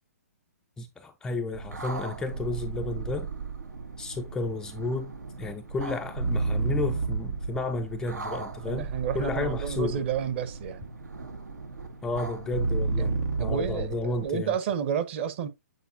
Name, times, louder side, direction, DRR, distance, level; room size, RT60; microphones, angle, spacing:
voice 1, 0.8-3.3 4.0-5.1 5.4-8.9 9.1-10.0 12.0-13.1 13.4-14.5, left 3 dB, 5° left, 0.3 m, -32 dB
sound 1, 1.5-14.3, right 3 dB, 90° right, 1.4 m, -33 dB
voice 2, 8.7-10.9 13.0-15.5, right 8 dB, 40° right, 1.0 m, -31 dB
8.0 x 4.3 x 2.7 m
hypercardioid pair, 145°, 9 cm